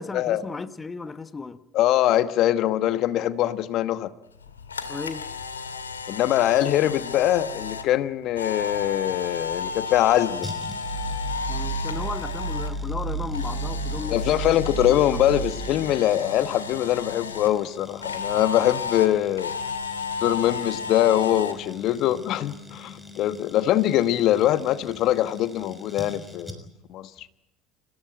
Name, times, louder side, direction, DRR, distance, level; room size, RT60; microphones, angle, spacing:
voice 1, 0.0-1.6 4.9-5.3 11.5-14.6 14.9-15.2, left 4 dB, 20° left, 1.1 m, -35 dB
voice 2, 1.7-4.1 6.1-10.5 14.1-19.5 20.2-26.6 26.9-27.1, left 12 dB, 55° left, 1.1 m, -23 dB
Camera, 4.4-12.7 13.0-17.5 18.0-21.5, left 5 dB, 85° left, 2.1 m, -33 dB
sound 1, 10.4-26.9 27.2-27.3, left 3 dB, 5° left, 5.8 m, -44 dB
sound 2, 10.5-16.0, right 3 dB, 85° right, 3.2 m, -31 dB
29.5 x 17.0 x 9.1 m
hypercardioid pair, 70°, 0 cm